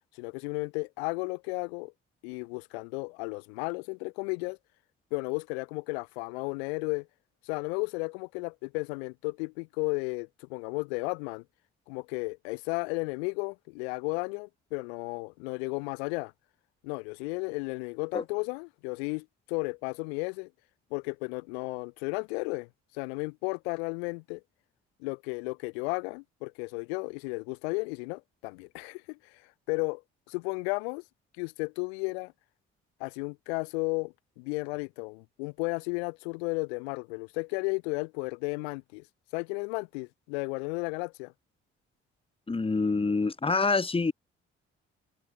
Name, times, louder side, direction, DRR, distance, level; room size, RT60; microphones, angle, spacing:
voice 1, 0.1-1.9 2.2-4.6 5.1-7.1 7.4-11.4 11.9-16.3 16.8-20.5 20.9-22.7 22.9-24.4 25.0-30.0 30.3-31.0 31.4-32.3 33.0-39.1 39.3-41.3, left 31 dB, 85° left, 1.1 m, -34 dB
voice 2, 42.5-44.1, left 4 dB, 20° left, 1.1 m, -26 dB
hypercardioid pair, 45°, 31 cm